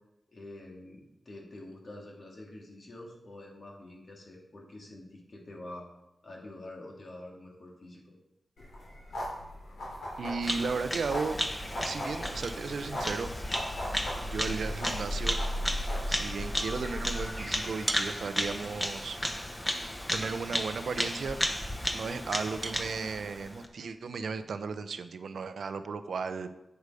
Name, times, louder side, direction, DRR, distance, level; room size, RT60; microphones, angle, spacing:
voice 1, 0.3-5.9 6.2-8.1, left 1 dB, 60° left, -1 dB, 2.2 m, -47 dB
sound 1, 8.6-17.3, equal, 85° left, 3.2 m, -37 dB
sound 2, 10.1-23.5, right 2 dB, 25° right, 0.7 m, -47 dB
voice 2, 10.2-11.4 11.8-13.3 14.2-15.4 16.1-19.2 20.1-21.4 21.9-26.5, right 5 dB, 85° right, 11 dB, 0.6 m, -35 dB
Bird vocalization bird call bird song, 10.4-23.7, equal, 15° left, 1.2 m, -34 dB
8.0 x 6.7 x 4.9 m, 0.89 s
cardioid pair, 60°, 0 cm